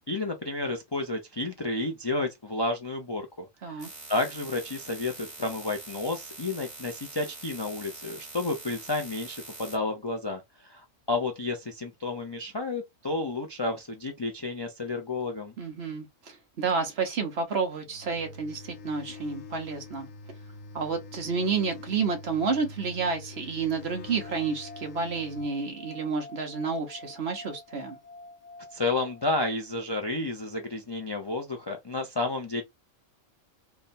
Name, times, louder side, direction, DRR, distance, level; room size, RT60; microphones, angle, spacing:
voice 1, 0.1-3.8 4.1-15.5 28.7-32.6, left 2 dB, 40° left, 0.3 m, -31 dB
sound 1, 3.8-9.8, right 2 dB, 40° right, 1.7 m, -44 dB
voice 2, 15.6-20.1 20.7-28.0, right 5 dB, 55° right, 1.1 m, -30 dB
sound 2, 17.9-25.5, left 3 dB, 75° left, 1.2 m, -45 dB
sound 3, 24.1-29.7, left 2 dB, 80° right, 1.4 m, -48 dB
3.5 x 2.2 x 4.1 m
omnidirectional pair, 1.4 m